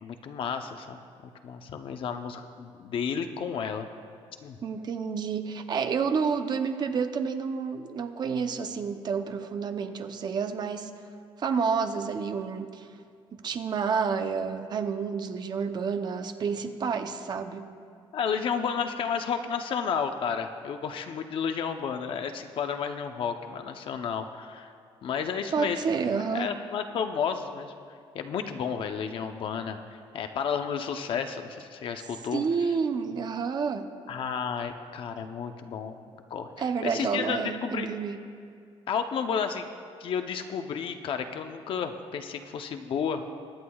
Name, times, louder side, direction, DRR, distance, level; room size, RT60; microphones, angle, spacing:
voice 1, 0.0-1.0 1.4-3.9 4.4-4.6 18.1-24.7 25.0-27.7 28.1-29.8 30.1-32.4 34.1-36.0 36.3-37.9 38.9-39.6 40.0-43.4, left 6 dB, 60° left, 6 dB, 0.7 m, -32 dB
voice 2, 4.6-10.9 11.4-12.9 13.4-17.7 25.5-26.5 32.3-33.9 36.6-38.2, right 5 dB, 45° right, 8 dB, 0.7 m, -29 dB
23.0 x 9.5 x 2.3 m, 2.2 s
cardioid pair, 125°, 10 cm